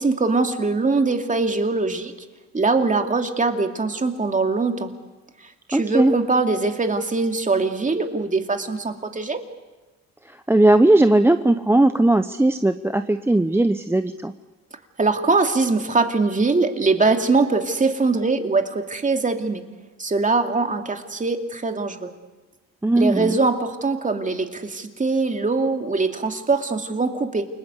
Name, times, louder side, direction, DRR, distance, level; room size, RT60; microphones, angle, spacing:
voice 1, 0.0-2.1 2.5-4.9 5.7-9.4 15.0-19.6 20.0-22.1 23.0-27.5, right 3 dB, 25° right, 5 dB, 2.5 m, -22 dB
voice 2, 5.7-6.1 10.5-14.3 22.8-23.4, right 2 dB, 10° right, 9 dB, 0.7 m, -18 dB
29.0 x 19.0 x 8.2 m, 1.2 s
cardioid pair, 90°, 30 cm